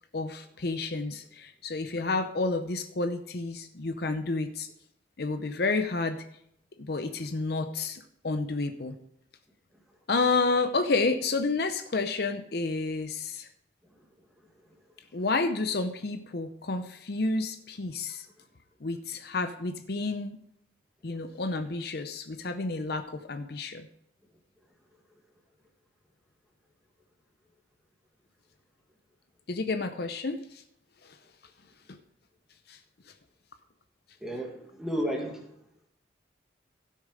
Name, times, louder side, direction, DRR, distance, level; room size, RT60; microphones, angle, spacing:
voice 1, 0.1-4.7 5.2-6.2 6.8-9.0 10.1-13.5 15.1-18.3 18.8-20.4 21.0-23.9 29.5-30.6 31.0-31.2 31.9-32.0 32.7-32.8, left 3 dB, 55° left, 8 dB, 0.6 m, -30 dB
voice 2, 34.2-35.5, equal, ahead, 0 dB, 1.8 m, -32 dB
16.0 x 6.5 x 4.9 m, 0.73 s
head